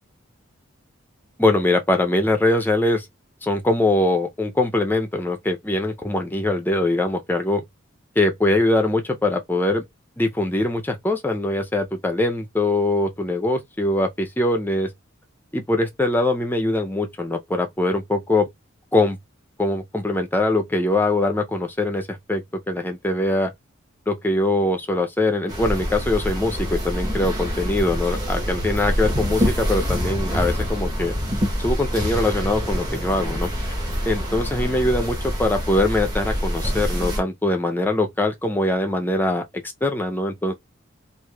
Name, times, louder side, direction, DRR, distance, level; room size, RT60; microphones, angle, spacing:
voice 1, 1.4-3.1 3.4-7.6 8.2-9.8 10.2-14.9 15.5-18.5 18.9-19.2 19.6-22.4 22.7-23.5 24.1-31.1 31.6-33.5 34.1-39.4 39.8-40.5, left 2 dB, 10° left, 0.4 m, -22 dB
sound 1, 25.5-37.2, equal, 20° right, 0.9 m, -25 dB
3.3 x 2.4 x 2.3 m
head